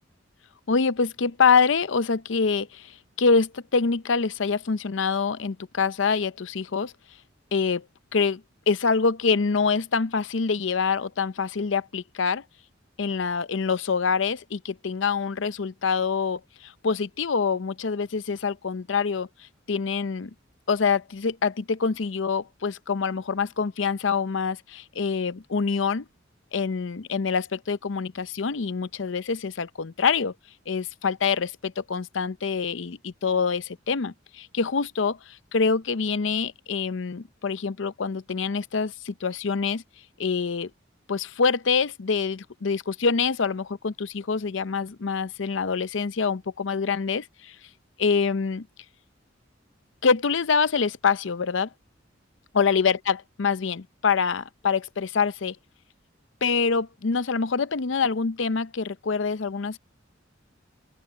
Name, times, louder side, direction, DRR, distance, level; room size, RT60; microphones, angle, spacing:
voice 1, 0.7-2.9 3.2-6.9 7.5-7.8 8.1-12.4 13.0-19.3 19.7-20.3 20.7-26.0 26.5-30.3 30.7-35.2 35.5-39.8 40.2-40.7 41.1-47.5 48.0-48.7 50.0-51.7 52.5-55.6 56.4-59.8, left 5 dB, 70° left, 0.6 m, -25 dB
open air
head